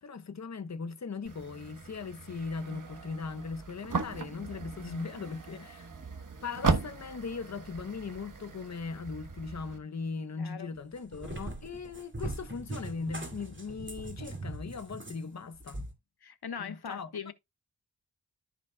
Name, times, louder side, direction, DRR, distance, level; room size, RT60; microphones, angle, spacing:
voice 1, 0.0-5.9 6.4-15.8 16.6-17.3, left 4 dB, 40° left, 0.9 m, -39 dB
sound 1, 1.3-9.8, right 4 dB, 50° right, 1.2 m, -37 dB
voice 2, 10.4-10.7 16.2-17.3, left 7 dB, 70° left, 1.2 m, -40 dB
Cat, 10.8-15.9, right 1 dB, 30° right, 2.3 m, -41 dB
14.0 x 5.1 x 2.3 m
wide cardioid pair, 95°, 40 cm